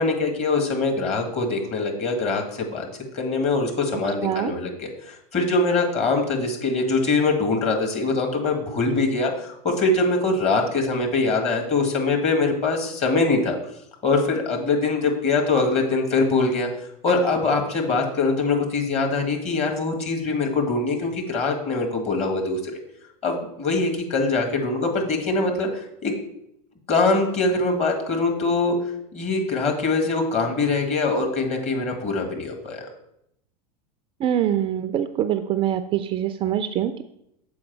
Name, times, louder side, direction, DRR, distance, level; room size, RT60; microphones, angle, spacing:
voice 1, 0.0-2.8 3.1-13.6 14.0-16.7 17.0-22.6 23.2-26.1 26.9-28.8 29.1-32.9, left 3 dB, 30° left, 2 dB, 1.7 m, -23 dB
voice 2, 34.2-37.0, right 10 dB, 25° right, 11 dB, 0.3 m, -24 dB
7.1 x 4.8 x 4.6 m, 0.77 s
figure-of-eight pair, 85°, 21 cm